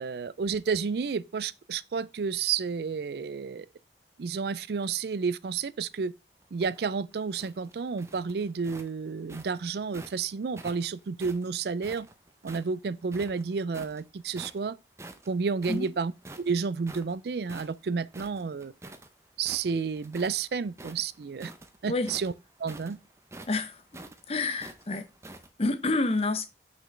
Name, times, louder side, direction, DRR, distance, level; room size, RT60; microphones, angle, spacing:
voice 1, 0.0-3.7 4.2-6.1 6.5-12.1 12.4-14.7 15.3-16.1 16.4-18.7 19.4-21.5 21.8-22.3 22.6-23.0, right 5 dB, 65° right, 0.4 m, -31 dB
sound 1, 6.4-10.2 10.6-12.7 13.1-14.0 14.3-14.7 15.0-19.1 19.4-20.4 20.7-25.5, right 2 dB, 15° right, 0.6 m, -47 dB
voice 2, 23.5-23.8 24.3-25.1 25.6-26.5, left 2 dB, 35° left, 0.7 m, -28 dB
6.1 x 5.2 x 3.2 m
head